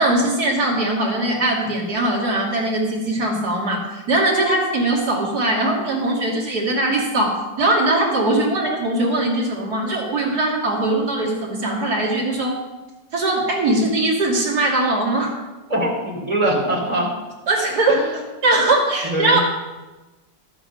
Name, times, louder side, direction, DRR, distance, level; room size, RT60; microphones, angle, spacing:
voice 1, 0.0-12.6 13.1-15.3 17.5-18.0 18.4-19.4, right 2 dB, 55° right, -3 dB, 3.0 m, -20 dB
voice 2, 15.7-17.1 17.9-18.2 19.0-19.4, right 1 dB, 20° right, -3 dB, 3.0 m, -22 dB
12.0 x 8.2 x 5.5 m, 1.1 s
omnidirectional pair, 2.0 m